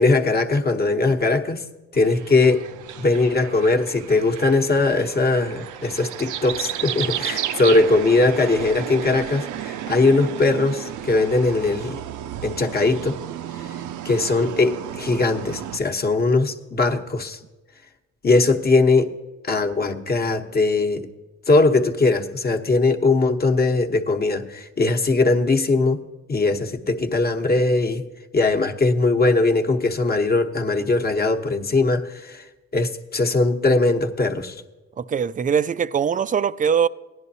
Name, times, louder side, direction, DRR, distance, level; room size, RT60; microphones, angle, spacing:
voice 1, 0.0-1.7 1.9-2.6 3.0-12.0 12.4-13.2 14.0-17.4 18.2-19.1 19.4-21.1 21.5-26.0 26.3-28.0 28.3-32.4 32.7-34.6, left 3 dB, 30° left, 1.0 m, -20 dB
sound 1, 1.9-15.8, right 11 dB, 75° right, 0.6 m, -33 dB
voice 2, 35.0-36.9, right 7 dB, 30° right, 0.3 m, -21 dB
17.0 x 10.5 x 2.8 m
cardioid pair, 90°, 30 cm